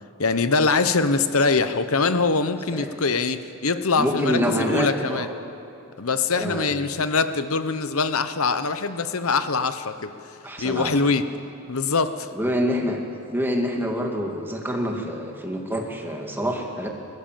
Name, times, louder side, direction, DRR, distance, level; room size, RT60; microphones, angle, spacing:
voice 1, 0.2-5.3 6.0-10.1 10.6-11.2 11.7-12.3, left 4 dB, 75° left, 11 dB, 1.1 m, -23 dB
voice 2, 4.0-5.3 6.3-6.7 10.4-11.0 12.3-13.0 13.3-16.9, equal, 10° right, 1 dB, 2.3 m, -26 dB
29.0 x 14.0 x 7.6 m, 2.9 s
head